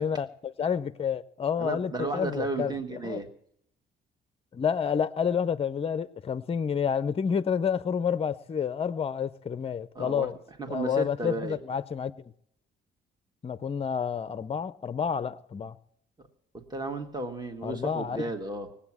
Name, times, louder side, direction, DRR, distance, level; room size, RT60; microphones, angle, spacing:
voice 1, 0.0-2.7 3.0-3.2 4.5-10.3 10.7-12.2 13.4-15.8 17.6-18.2, left 7 dB, 30° left, 0.6 m, -29 dB
voice 2, 1.6-3.3 9.9-10.3 10.6-11.6 16.5-18.7, right 2 dB, 20° right, 1.6 m, -33 dB
18.5 x 8.6 x 7.3 m
cardioid pair, 90°, 20 cm